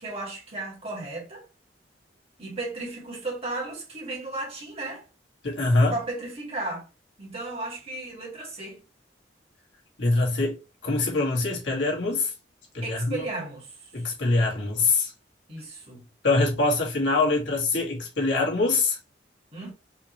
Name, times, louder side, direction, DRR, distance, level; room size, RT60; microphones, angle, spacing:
voice 1, 0.0-1.4 2.4-5.0 5.9-6.9 7.2-8.8 12.8-13.9 15.5-16.1 19.5-19.7, right 2 dB, 35° right, 2.1 m, -34 dB
voice 2, 5.4-5.9 10.0-12.3 12.7-13.2 13.9-15.1 16.2-19.0, left 3 dB, 80° left, 2.0 m, -24 dB
4.8 x 3.2 x 3.1 m
head